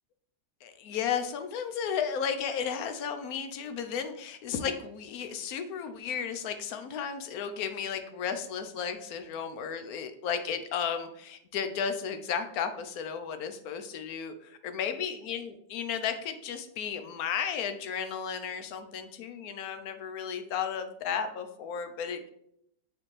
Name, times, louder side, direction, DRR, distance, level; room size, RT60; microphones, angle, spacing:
voice 1, 0.6-22.3, left 7 dB, 70° left, 9 dB, 0.9 m, -34 dB
8.4 x 4.4 x 3.2 m, 0.75 s
omnidirectional pair, 2.0 m